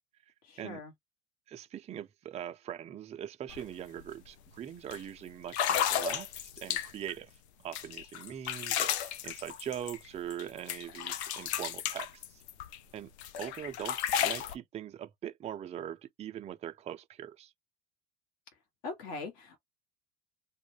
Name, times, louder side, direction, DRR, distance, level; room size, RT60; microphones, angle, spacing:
voice 1, 0.4-0.9 18.8-19.6, left 3 dB, 55° left, 1.1 m, -41 dB
voice 2, 1.5-7.3 7.6-12.4 12.9-13.1 13.4-17.5, right 10 dB, 20° right, 0.4 m, -42 dB
sound 1, 3.5-3.6 4.0-4.3 4.9-5.0 5.5-7.1 7.7-10.4 10.7-12.8 13.2-14.5, left 10 dB, 80° left, 0.5 m, -33 dB
2.3 x 2.1 x 3.1 m
hypercardioid pair, 80°, 33 cm